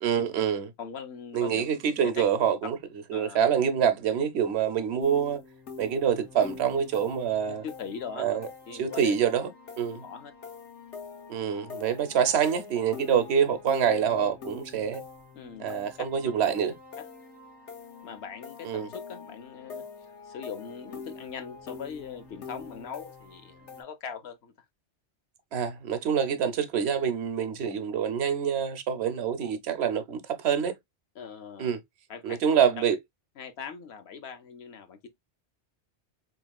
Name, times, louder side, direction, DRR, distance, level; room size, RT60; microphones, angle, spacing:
voice 1, 0.0-0.7 1.3-2.8 3.1-5.4 5.8-7.6 8.2-8.5 8.8-9.5 9.8-10.0 11.3-15.0 15.6-16.7 18.6-18.9 25.5-30.7 31.6-31.8 32.2-33.0, right 8 dB, 70° right, 0.9 m, -26 dB
voice 2, 0.8-1.6 2.0-2.2 3.1-3.4 7.5-8.4 8.7-9.1 10.0-10.3 15.3-15.7 17.0-17.1 18.0-24.5 31.1-31.7 32.1-32.9 33.4-35.1, left 7 dB, 65° left, 0.9 m, -41 dB
sound 1, 5.0-23.8, left 5 dB, 80° left, 1.3 m, -45 dB
4.1 x 3.0 x 2.2 m
omnidirectional pair, 1.2 m